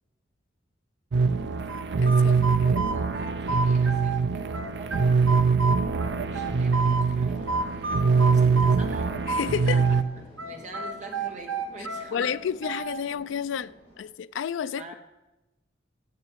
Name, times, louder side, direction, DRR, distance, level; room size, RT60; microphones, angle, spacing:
sound 1, 1.1-10.0, right 5 dB, 60° right, 0.5 m, -23 dB
sound 2, 1.7-4.2 4.5-7.1 7.5-10.1 10.4-13.0, right 3 dB, 85° right, 1.1 m, -31 dB
voice 1, 2.0-3.0 9.3-9.8 12.1-14.9, left 7 dB, 70° left, 0.3 m, -31 dB
voice 2, 2.7-4.9 6.2-7.6 8.3-9.1 9.6-9.8 10.2-12.5 14.7-15.0, right 3 dB, 40° right, 1.6 m, -45 dB
sound 3, 6.7-14.1, equal, 25° left, 3.5 m, -49 dB
13.5 x 7.1 x 4.6 m
head